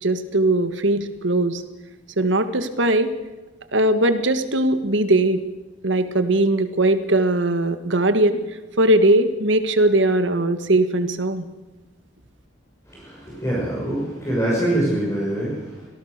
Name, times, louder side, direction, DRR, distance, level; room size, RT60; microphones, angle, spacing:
voice 1, 0.0-1.6 2.2-3.1 3.7-5.4 5.8-8.4 8.8-11.4, right 1 dB, 75° right, 10 dB, 1.7 m, -19 dB
voice 2, 12.9-15.9, right 1 dB, 15° left, -5 dB, 6.3 m, -24 dB
26.0 x 18.0 x 6.7 m, 1.2 s
head